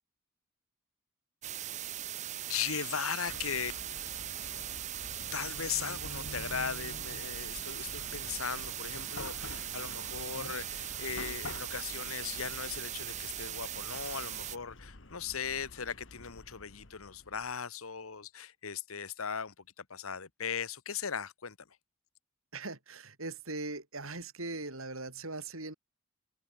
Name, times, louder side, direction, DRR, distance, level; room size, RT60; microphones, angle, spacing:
sound 1, 1.4-14.6, right 12 dB, 35° right, 0.6 m, -40 dB
voice 1, 2.5-3.7 5.3-21.7, left 7 dB, 85° left, 1.3 m, -38 dB
Chatter / Car passing by / Traffic noise roadway noise, 3.3-17.5, left 2 dB, 60° left, 1.8 m, -48 dB
voice 2, 22.5-25.7, right 2 dB, 80° right, 6.4 m, -40 dB
head